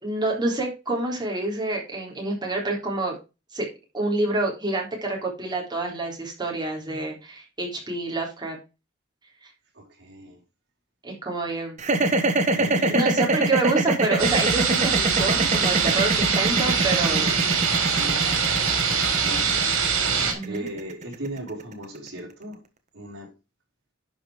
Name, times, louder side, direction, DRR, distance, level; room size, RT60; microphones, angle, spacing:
voice 1, 0.0-3.1 3.5-3.7 3.9-8.6 11.0-11.8 12.9-17.3 20.3-20.7, right 2 dB, 20° right, 3.6 m, -27 dB
voice 2, 9.7-10.4 12.5-13.3 17.2-17.5 17.8-18.3 19.2-19.7 20.4-22.6 22.9-23.3, right 1 dB, 55° right, 4.2 m, -37 dB
sound 1, 11.8-22.0, right 2 dB, 35° right, 1.3 m, -24 dB
sound 2, 14.2-20.3, right 6 dB, 75° right, 3.4 m, -23 dB
11.0 x 5.3 x 4.8 m
head